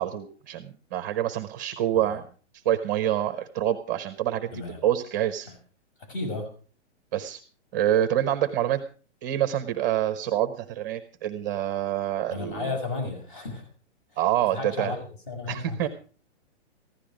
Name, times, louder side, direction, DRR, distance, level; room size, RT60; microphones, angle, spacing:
voice 1, 0.0-2.2 2.5-4.5 4.8-5.5 7.1-7.4 7.7-8.8 9.2-12.7 14.2-14.9 15.5-15.9, right 11 dB, 15° right, 9 dB, 0.6 m, -26 dB
voice 2, 4.5-4.8 5.5-5.6 6.0-6.5 12.3-13.7 14.5-15.8, left 3 dB, 45° left, 7 dB, 6.1 m, -34 dB
15.0 x 12.0 x 5.0 m, 0.40 s
hypercardioid pair, 170°, 35 cm